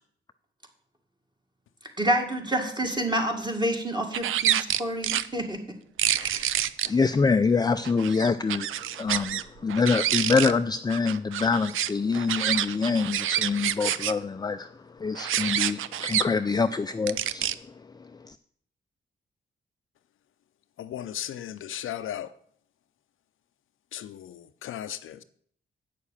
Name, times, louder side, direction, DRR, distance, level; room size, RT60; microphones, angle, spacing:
voice 1, 2.0-5.7 6.1-6.5, right 1 dB, 20° right, 2.0 m, -28 dB
sound 1, 4.1-5.3 6.0-6.9 7.8-9.4 9.7-10.5 10.9-14.1 15.1-16.2 17.1-17.5, right 11 dB, 85° right, 0.4 m, -27 dB
voice 2, 6.8-18.4, left 4 dB, 20° left, 0.4 m, -26 dB
voice 3, 20.8-22.3 23.9-25.2, left 11 dB, 85° left, 0.6 m, -36 dB
8.4 x 6.5 x 7.1 m
cardioid pair, 80°, 20 cm